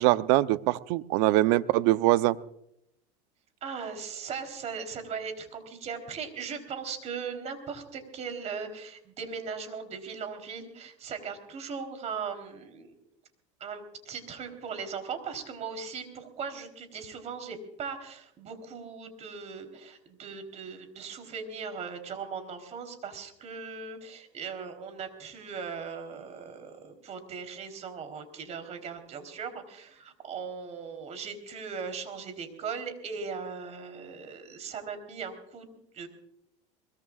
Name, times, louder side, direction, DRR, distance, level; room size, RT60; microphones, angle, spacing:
voice 1, 0.0-2.4, right 17 dB, 70° right, 14 dB, 0.8 m, -23 dB
voice 2, 3.6-13.0 13.6-36.1, right 6 dB, 40° right, 6 dB, 3.8 m, -39 dB
22.5 x 22.5 x 2.5 m, 0.75 s
supercardioid pair, 110°, 17 cm